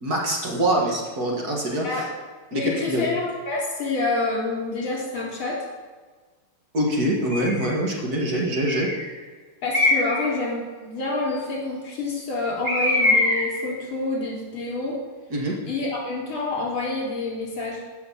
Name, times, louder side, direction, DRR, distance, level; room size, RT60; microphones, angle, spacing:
voice 1, 0.0-2.0 2.5-3.1 6.7-8.9 15.3-15.6, right 1 dB, 50° right, -1 dB, 2.1 m, -24 dB
voice 2, 2.5-5.6 9.6-15.0 15.7-17.8, left 3 dB, 70° left, -4 dB, 4.0 m, -27 dB
Bird, 7.3-7.8 8.5-9.1 9.7-10.3 12.6-13.6, left 2 dB, 30° right, 2.1 m, -23 dB
14.5 x 5.9 x 5.7 m, 1.4 s
omnidirectional pair, 2.3 m